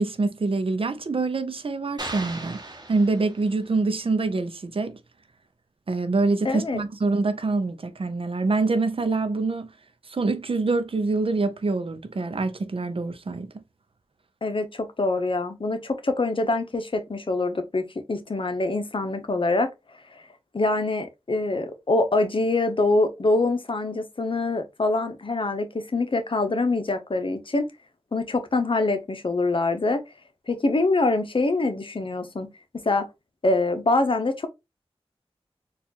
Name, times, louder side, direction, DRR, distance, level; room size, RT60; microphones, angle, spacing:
voice 1, 0.0-2.6 2.9-5.0 5.9-9.7 10.1-13.5, right 3 dB, 60° right, 0.5 m, -25 dB
sound 1, 2.0-3.7, right 2 dB, 40° right, 0.9 m, -37 dB
voice 2, 6.4-6.8 14.4-19.7 20.5-27.7 28.1-30.0 30.5-32.5 32.7-33.1 33.4-34.5, left 2 dB, 55° left, 0.7 m, -24 dB
4.1 x 2.4 x 2.8 m
wide cardioid pair, 50°, 10 cm